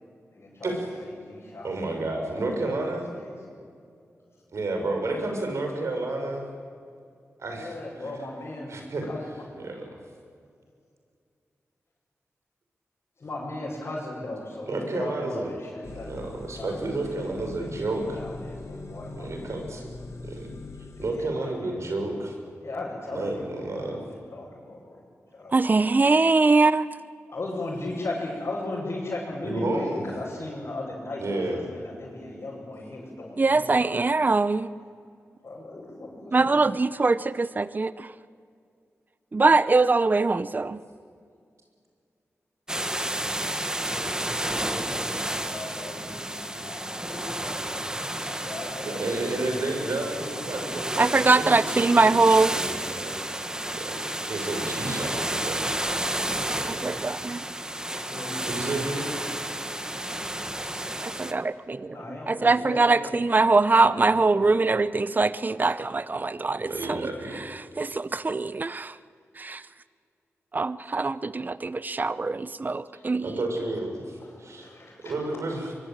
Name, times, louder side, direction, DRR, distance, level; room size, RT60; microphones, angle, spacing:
voice 1, 0.3-0.7 1.0-3.4 7.5-9.4 13.2-16.2 16.6-16.8 17.2-19.6 21.0-21.7 22.6-25.0 25.3-25.5 27.3-34.0 35.4-36.5 43.8-50.7 58.1-58.7 60.7-60.9 61.8-63.4 63.7-64.9 74.2-75.1, left 2 dB, 60° left, -7 dB, 7.1 m, -38 dB
voice 2, 1.6-3.1 4.5-6.5 7.4-8.1 8.7-9.0 9.6-10.0 14.7-15.5 15.9-18.2 19.2-19.9 20.2-20.5 21.0-22.4 23.1-24.0 29.4-30.1 31.2-31.6 48.8-53.2 53.8-55.7 56.4-56.8 58.5-59.1 66.6-67.4 73.2-74.7 75.0-75.7, right 2 dB, 75° right, 3 dB, 6.1 m, -31 dB
sound 1, 15.8-21.1, left 2 dB, 80° left, 3.6 m, -41 dB
voice 3, 25.5-26.9 33.4-34.7 36.3-38.1 39.3-40.8 51.0-52.5 56.7-57.5 61.0-67.0 67.8-69.0 69.4-69.6 70.5-73.3, right 3 dB, 35° right, 15 dB, 0.7 m, -22 dB
sound 2, 42.7-61.3, right 1 dB, 15° right, 1.6 m, -31 dB
23.5 x 23.5 x 9.1 m, 2.3 s
cardioid pair, 65°, 5 cm